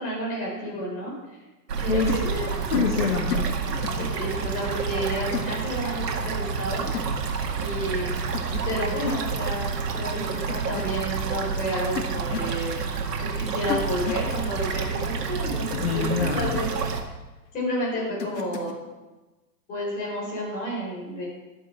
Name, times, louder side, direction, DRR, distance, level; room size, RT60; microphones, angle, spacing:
voice 1, 0.0-1.4 1.8-2.2 3.9-6.9 7.5-8.1 8.6-12.7 13.2-16.7 17.5-18.8 19.7-21.3, equal, 15° left, -5 dB, 4.5 m, -31 dB
sound 1, 1.7-17.0, right 5 dB, 70° right, 2.1 m, -29 dB
voice 2, 1.9-3.5 15.7-16.6, left 6 dB, 35° left, 3 dB, 1.2 m, -26 dB
sound 2, 2.1-2.3 2.7-2.9 3.3-3.5 3.8-4.1 5.3-5.5 6.9-7.2 8.3-8.6 8.9-9.2 10.5-10.8 12.0-12.5 13.7-14.3 15.9-16.1 18.2-18.7, left 7 dB, 80° left, 2.1 m, -32 dB
12.0 x 9.9 x 5.8 m, 1.1 s
hypercardioid pair, 170°, 49 cm